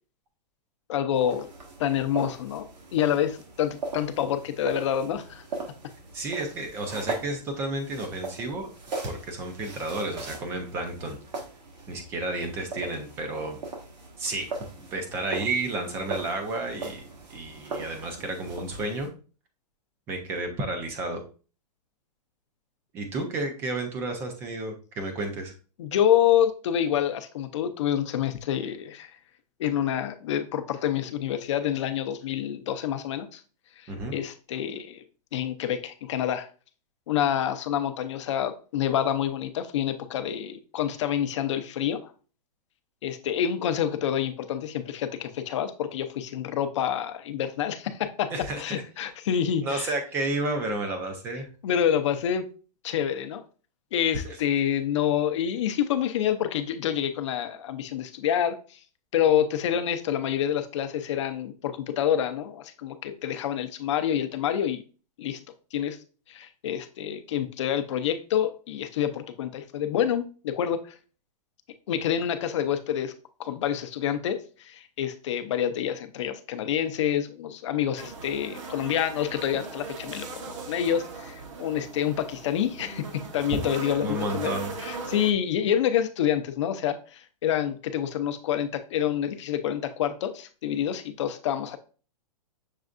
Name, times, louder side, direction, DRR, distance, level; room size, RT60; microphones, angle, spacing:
voice 1, 0.9-1.5 1.8-5.4 25.8-29.1 29.6-33.4 33.8-35.0 35.3-36.5 37.1-42.1 43.0-48.3 48.6-49.9 51.6-52.5 52.8-53.4 53.9-58.8 59.1-64.8 65.2-65.4 65.7-66.0 66.3-70.9 71.9-73.1 73.4-83.1 83.3-84.5 84.8-91.8, left 9 dB, 45° left, 9 dB, 0.5 m, -27 dB
sound 1, 1.1-19.1, right 3 dB, 90° right, 1.6 m, -39 dB
voice 2, 6.1-8.7 9.0-11.2 11.9-13.6 14.2-14.5 14.8-17.0 17.3-19.1 20.1-21.2 22.9-25.5 33.9-34.2 48.3-48.8 49.6-51.5 54.2-54.4 83.5-83.6 83.9-84.7, right 2 dB, 10° right, 5 dB, 0.4 m, -31 dB
sound 2, 78.0-85.3, right 4 dB, 50° right, 0.7 m, -39 dB
6.4 x 3.4 x 2.5 m, 0.38 s
hypercardioid pair, 165°, 21 cm